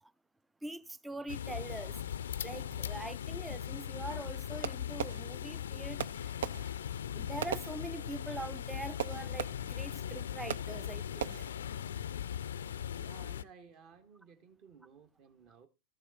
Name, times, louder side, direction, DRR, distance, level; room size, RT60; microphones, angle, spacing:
voice 1, 0.6-2.0 2.4-6.4 7.1-11.5, right 2 dB, 10° right, 0.5 m, -43 dB
sound 1, 1.3-13.4, left 9 dB, 65° left, 0.5 m, -39 dB
Fireworks, 4.6-5.7 6.0-8.4 9.0-9.9 10.5-10.9 11.2-11.7, right 8 dB, 60° right, 0.5 m, -40 dB
voice 2, 12.6-15.7, right 6 dB, 40° right, 1.6 m, -57 dB
14.0 x 7.3 x 4.0 m
figure-of-eight pair, 90°, 0 cm